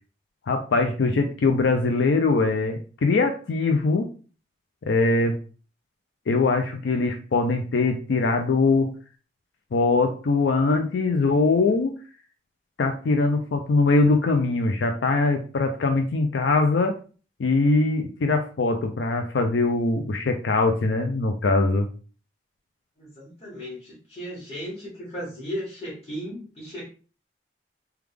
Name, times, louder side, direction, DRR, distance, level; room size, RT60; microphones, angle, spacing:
voice 1, 0.5-4.1 4.9-5.4 6.3-8.9 9.7-12.0 12.8-17.0 17.4-21.9, left 3 dB, 85° left, 5 dB, 0.4 m, -22 dB
voice 2, 23.0-26.9, equal, 35° left, -9 dB, 1.2 m, -36 dB
3.3 x 2.3 x 3.3 m, 0.38 s
head